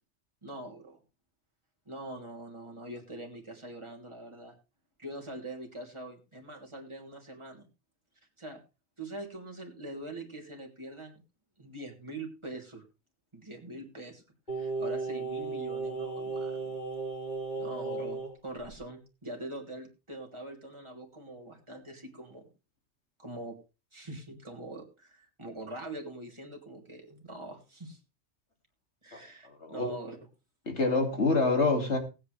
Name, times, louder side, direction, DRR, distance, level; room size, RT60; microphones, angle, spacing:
voice 1, 0.4-1.0 1.9-4.6 5.0-7.7 8.4-8.6 9.0-11.2 11.6-12.8 13.3-14.2 14.5-16.8 17.6-22.5 23.2-23.6 23.9-28.0 29.0-30.2, right 1 dB, 25° right, 0 dB, 3.2 m, -43 dB
Singing, 14.5-18.3 18.6-18.8, right 3 dB, 40° left, 5.4 m, -35 dB
voice 2, 29.1-30.0 30.7-32.0, left 3 dB, 75° left, 5 dB, 2.7 m, -27 dB
19.5 x 8.7 x 3.3 m, 0.30 s
omnidirectional pair, 1.2 m